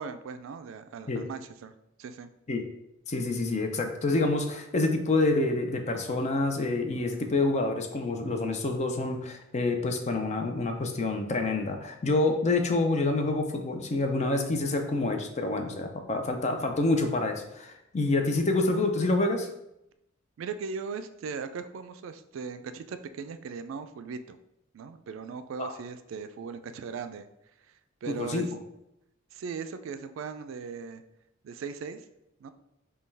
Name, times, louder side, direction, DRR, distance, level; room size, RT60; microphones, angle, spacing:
voice 1, 0.0-2.3 20.4-24.4 24.7-27.3 28.0-28.5 29.3-31.0 31.4-32.0 32.4-32.5, right 5 dB, 70° right, 10 dB, 0.3 m, -38 dB
voice 2, 3.1-19.5 25.6-25.7 28.1-28.5, left 2 dB, 35° left, 5 dB, 0.5 m, -27 dB
5.3 x 2.3 x 3.3 m, 0.83 s
head